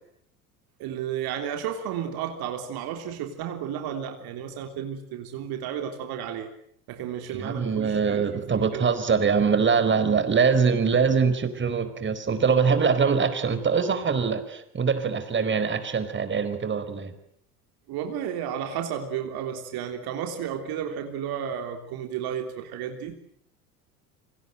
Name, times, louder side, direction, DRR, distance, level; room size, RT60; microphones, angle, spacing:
voice 1, 0.8-6.5 6.9-8.9 17.9-23.2, right 9 dB, 50° right, 5 dB, 3.6 m, -33 dB
voice 2, 7.3-17.1, right 5 dB, 25° right, 11 dB, 4.4 m, -23 dB
28.0 x 25.5 x 8.0 m, 0.67 s
figure-of-eight pair, 75°, 46 cm